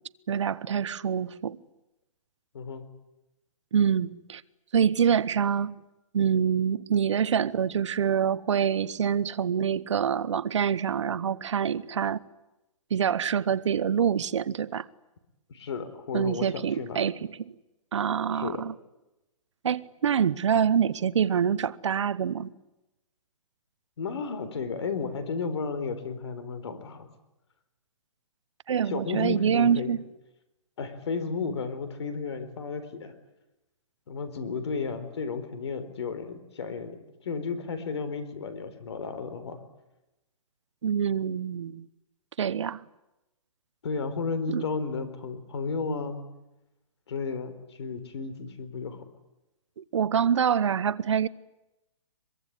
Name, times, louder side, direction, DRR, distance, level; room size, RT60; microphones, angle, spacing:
voice 1, 0.3-1.6 3.7-4.4 4.7-5.8 6.1-12.2 12.9-14.9 16.1-17.5 17.9-18.7 19.6-22.5 28.7-30.0 40.8-41.9 42.4-42.8 44.5-44.6 49.8-51.3, right 8 dB, 55° right, 0.9 m, -26 dB
voice 2, 2.5-2.9 15.5-17.0 18.3-18.6 24.0-27.1 28.9-29.9 30.8-33.1 34.1-37.0 37.2-39.6 43.8-46.2 47.1-49.0, left 5 dB, 50° left, 4.2 m, -33 dB
23.5 x 23.0 x 9.9 m
hypercardioid pair, 175°, 18 cm